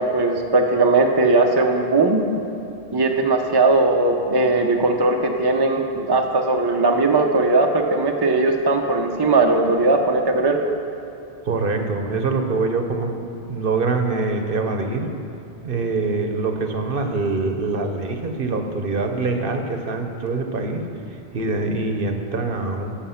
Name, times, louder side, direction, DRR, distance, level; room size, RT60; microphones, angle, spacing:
voice 1, 0.0-2.2 2.9-10.6, right 3 dB, 25° right, 2 dB, 0.6 m, -19 dB
voice 2, 11.4-15.1 15.6-20.8 21.1-22.9, right 3 dB, 55° right, 4 dB, 1.0 m, -24 dB
13.0 x 6.8 x 5.7 m, 2.8 s
omnidirectional pair, 1.1 m